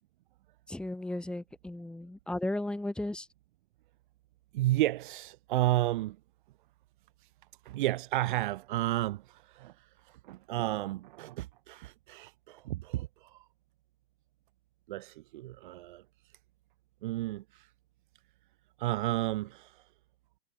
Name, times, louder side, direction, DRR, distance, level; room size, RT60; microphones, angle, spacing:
voice 1, 0.7-3.3, left 1 dB, ahead, 4.9 m, -35 dB
voice 2, 4.5-6.2 7.2-7.3 7.6-13.4 14.9-16.0 17.0-17.7 18.8-19.8, right 16 dB, 30° right, 3.2 m, -32 dB
hypercardioid pair, 150°, 48 cm